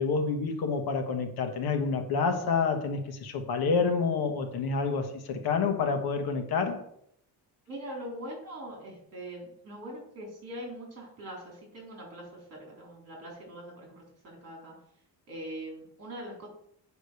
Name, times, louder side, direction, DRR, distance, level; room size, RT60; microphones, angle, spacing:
voice 1, 0.0-6.8, left 5 dB, 65° left, 1.3 m, -28 dB
voice 2, 7.7-14.7 15.3-16.5, right 1 dB, 35° right, 4.1 m, -42 dB
8.1 x 5.1 x 6.4 m
cardioid pair, 170°, 41 cm